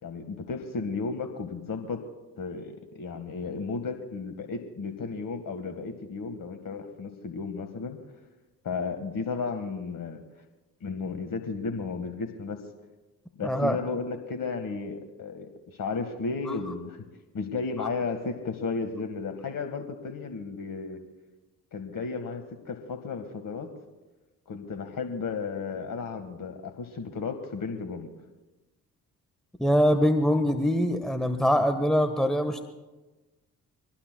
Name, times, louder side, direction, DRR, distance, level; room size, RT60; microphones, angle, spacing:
voice 1, 0.0-2.0 2.4-8.0 8.6-10.2 10.8-12.6 13.4-17.0 17.3-21.0 21.7-23.7 24.5-28.1, left 4 dB, 45° left, 7 dB, 1.7 m, -34 dB
voice 2, 13.4-13.8 17.8-17.9 29.6-32.6, equal, ahead, 7 dB, 1.3 m, -23 dB
24.5 x 19.5 x 2.3 m, 1.1 s
figure-of-eight pair, 40°, 47 cm